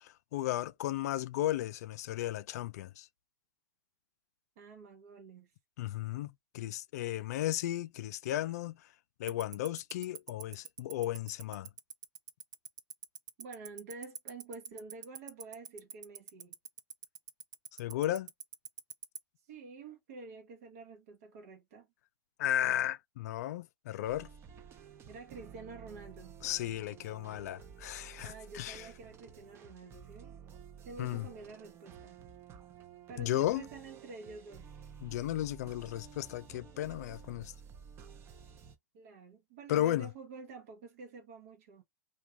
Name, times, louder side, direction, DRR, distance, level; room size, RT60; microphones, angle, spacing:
voice 1, 0.0-3.1 5.8-8.9 9.2-11.7 17.8-18.3 22.4-24.3 26.4-28.9 31.0-31.3 33.2-33.6 35.0-37.5 39.7-40.1, left 13 dB, 60° left, 0.4 m, -34 dB
voice 2, 4.6-5.5 13.4-16.6 19.5-21.9 25.1-26.3 28.2-30.3 30.8-32.2 33.1-34.7 38.9-41.8, right 4 dB, 55° right, 0.8 m, -49 dB
Tick-tock, 9.3-19.2, right 9 dB, 80° right, 0.4 m, -42 dB
sound 1, 24.0-38.8, right 7 dB, 25° right, 0.6 m, -52 dB
2.4 x 2.3 x 2.7 m
hypercardioid pair, 115°, 10 cm